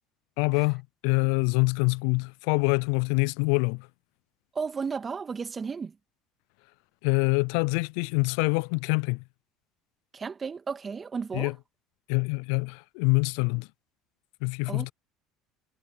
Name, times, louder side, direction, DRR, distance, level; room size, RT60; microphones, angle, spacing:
voice 1, 0.4-3.9 7.0-9.2 11.3-11.5 12.1-13.7 14.4-14.9, left 32 dB, 75° left, 0.3 m, -25 dB
voice 2, 4.5-6.0 10.1-11.5 14.7-14.9, right 5 dB, 30° right, 2.4 m, -33 dB
hypercardioid pair, 75°, 0 cm